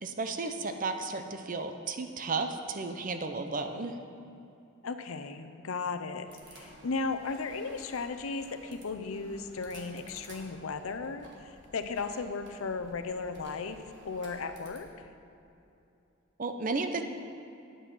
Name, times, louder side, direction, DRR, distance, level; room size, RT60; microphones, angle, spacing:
voice 1, 0.0-4.0 16.4-17.0, right 3 dB, 40° right, 7 dB, 0.6 m, -33 dB
voice 2, 4.8-15.1, left 4 dB, 85° left, 8 dB, 0.6 m, -36 dB
sound 1, 6.3-14.8, right 1 dB, 55° right, 1.7 m, -54 dB
9.3 x 7.6 x 6.1 m, 2.7 s
head